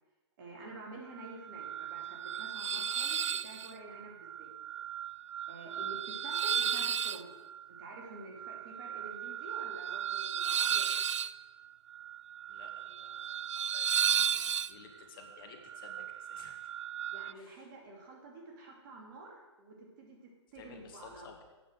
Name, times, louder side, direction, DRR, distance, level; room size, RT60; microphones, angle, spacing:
voice 1, 0.4-4.5 5.5-7.3 7.8-10.9 17.1-21.3, right 2 dB, 45° right, 0 dB, 2.7 m, -49 dB
sound 1, 1.2-17.3, right 8 dB, 75° right, 0.4 m, -35 dB
voice 2, 12.5-16.7 17.3-17.7 20.5-21.4, left 5 dB, 50° left, 4 dB, 1.5 m, -55 dB
8.5 x 5.6 x 7.7 m, 1.1 s
hypercardioid pair, 130°, 15 cm